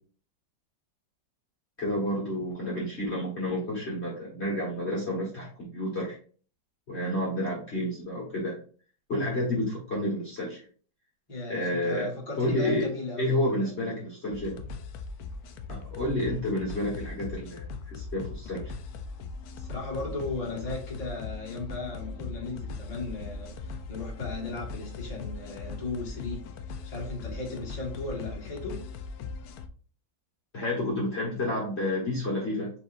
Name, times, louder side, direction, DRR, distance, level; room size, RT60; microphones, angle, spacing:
voice 1, 1.8-6.2 6.9-8.6 9.1-10.7 11.5-12.1 12.4-12.9 13.2-14.6 15.7-18.6 30.5-32.7, left 1 dB, 35° left, 1.7 m, -30 dB
voice 2, 11.3-13.7 19.5-26.5 26.8-28.8, left 2 dB, 20° left, 1.7 m, -36 dB
sound 1, 14.3-29.7, left 4 dB, 70° left, 0.9 m, -39 dB
4.6 x 4.2 x 2.6 m
omnidirectional pair, 2.1 m